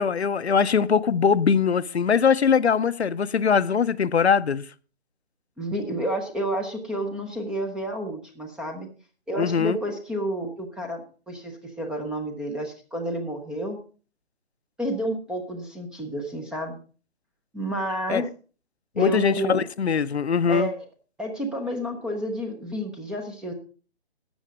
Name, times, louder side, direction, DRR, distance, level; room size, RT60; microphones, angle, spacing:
voice 1, 0.0-4.6 9.4-9.8 18.1-18.2 19.0-20.7, left 6 dB, 80° left, 0.8 m, -21 dB
voice 2, 5.6-8.9 9.3-13.8 14.8-16.8 17.5-18.3 19.0-19.6 20.5-20.8 21.2-23.5, right 1 dB, ahead, 0.6 m, -30 dB
12.5 x 8.1 x 5.1 m
figure-of-eight pair, 145°, 33 cm